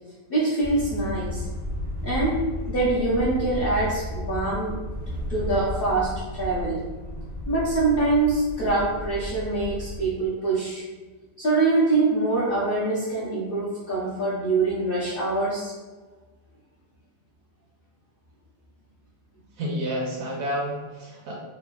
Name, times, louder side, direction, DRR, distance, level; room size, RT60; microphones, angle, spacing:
voice 1, 0.3-1.5 2.0-2.4 2.7-4.8 5.3-6.8 7.5-10.8 11.4-15.7, right 2 dB, 75° left, -8 dB, 0.5 m, -24 dB
sound 1, 0.6-10.0, equal, 40° right, 0.5 m, -33 dB
voice 2, 19.6-21.4, equal, 70° right, -3 dB, 0.8 m, -29 dB
3.3 x 2.1 x 2.2 m, 1.3 s
omnidirectional pair, 1.7 m